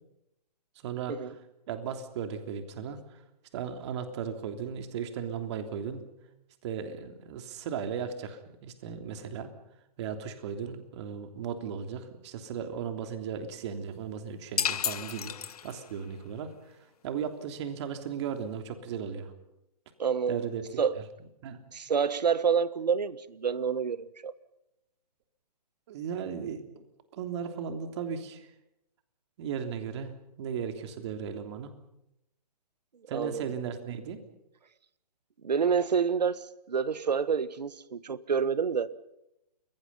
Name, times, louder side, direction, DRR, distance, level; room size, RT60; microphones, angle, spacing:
voice 1, 0.8-1.2 1.7-3.2 3.5-6.1 6.6-9.5 10.0-16.8 17.0-19.3 20.3-20.6 21.0-21.1 21.4-21.6 25.9-26.8 27.1-28.5 29.4-30.1 30.4-31.7 33.1-34.2, right 7 dB, 40° right, 6 dB, 3.3 m, -36 dB
sound 1, 14.6-16.0, left 8 dB, 60° left, 1.1 m, -32 dB
voice 2, 20.0-20.5 20.8-21.0 21.7-24.3 33.1-33.5 35.4-38.9, right 6 dB, 75° right, 15 dB, 1.6 m, -28 dB
30.0 x 22.5 x 5.6 m, 0.85 s
hypercardioid pair, 140°, 21 cm